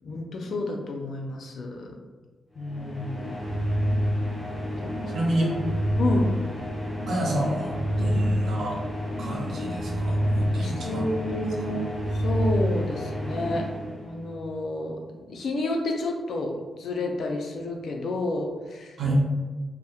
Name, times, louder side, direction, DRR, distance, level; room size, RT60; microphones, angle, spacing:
voice 1, 0.0-1.9 2.6-3.6 4.8-5.7 6.0-6.3 8.0-8.4 10.6-13.7 14.0-15.0 15.3-19.0, left 2 dB, 70° left, 2 dB, 0.4 m, -30 dB
sound 1, 2.6-14.5, equal, 5° right, 1.4 m, -28 dB
voice 2, 5.1-5.5 7.1-8.8 9.2-11.0 11.3-11.8 19.0-19.2, right 1 dB, 75° right, -3 dB, 0.7 m, -29 dB
2.7 x 2.1 x 2.2 m, 1.3 s
cardioid pair, 80°, 0 cm